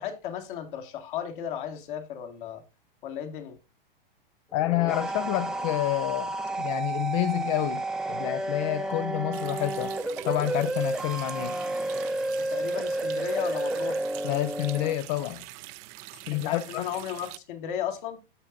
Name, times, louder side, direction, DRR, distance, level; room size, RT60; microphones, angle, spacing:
voice 1, 0.0-2.6 3.0-3.6 12.4-14.0 16.3-18.2, left 9 dB, 60° left, 2.0 m, -34 dB
voice 2, 4.5-9.9 10.2-11.6 14.2-15.4 16.1-16.9, left 16 dB, 40° left, 0.5 m, -29 dB
sound 1, 4.5-14.9, right 2 dB, ahead, 0.7 m, -31 dB
Water tap faucet, 9.3-17.4, right 18 dB, 40° right, 0.6 m, -44 dB
13.5 x 5.7 x 2.6 m
hypercardioid pair, 105°, 29 cm